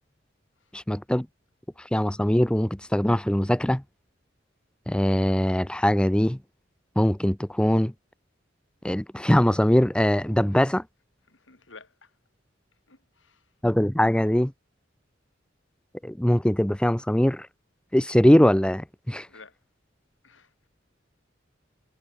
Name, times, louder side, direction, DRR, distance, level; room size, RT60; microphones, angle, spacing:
voice 1, 0.7-1.3 1.9-3.8 4.9-6.4 7.0-7.9 8.8-10.8 13.6-14.5 16.0-17.5 17.9-19.3, equal, 5° left, 0.6 m, -22 dB
voice 2, 11.3-12.1 12.9-13.5 19.3-19.6 20.2-20.5, left 4 dB, 90° left, 3.8 m, -52 dB
head